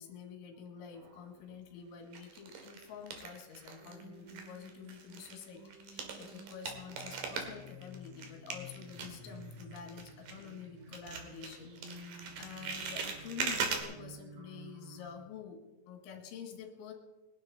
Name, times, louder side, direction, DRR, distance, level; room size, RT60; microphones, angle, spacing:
voice 1, 0.0-15.6 15.9-16.9, left 7 dB, 80° left, 3 dB, 4.3 m, -48 dB
sound 1, 0.9-1.6 2.1-4.0 4.3-10.7 10.9-13.8, right 5 dB, 55° right, 2.9 m, -41 dB
sound 2, 3.8-15.1, equal, 70° right, 4.7 m, -53 dB
22.0 x 11.0 x 4.2 m, 1.1 s
omnidirectional pair, 5.5 m